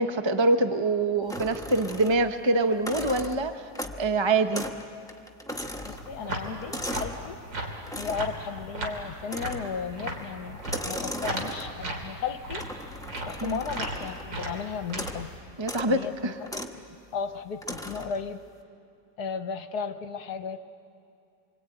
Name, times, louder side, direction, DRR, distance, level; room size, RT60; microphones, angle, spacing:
voice 1, 0.0-3.7 4.0-4.7 13.4-13.6 15.6-16.3, right 2 dB, 25° right, 7 dB, 0.6 m, -25 dB
sound 1, 1.3-2.4 2.7-4.1 4.5-4.8 5.1-7.2 7.9-8.4 9.3-9.8 10.6-11.9 12.6-14.3 14.9-15.3 15.6-15.9 16.5-16.8 17.6-18.2, left 1 dB, ahead, 1.2 m, -37 dB
voice 2, 5.8-7.4 7.9-12.6 13.3-15.3 15.8-16.6 17.1-18.4 19.2-20.6, left 6 dB, 65° left, 9 dB, 1.4 m, -35 dB
sound 2, 5.8-15.4, right 1 dB, 80° right, 3.7 m, -36 dB
26.5 x 24.5 x 9.1 m, 2.5 s
omnidirectional pair, 2.0 m